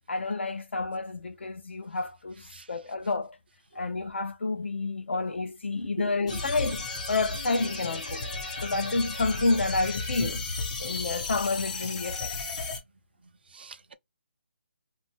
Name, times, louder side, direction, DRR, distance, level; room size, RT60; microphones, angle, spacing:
voice 1, 0.0-3.4 3.7-8.3 8.6-10.4 10.8-12.4, left 3 dB, 75° left, 0.8 m, -29 dB
voice 2, 6.0-6.4 13.5-13.9, right 6 dB, 60° right, 0.4 m, -43 dB
sound 1, 6.3-12.8, left 3 dB, 35° left, 1.0 m, -34 dB
2.6 x 2.2 x 3.4 m
hypercardioid pair, 170°, 6 cm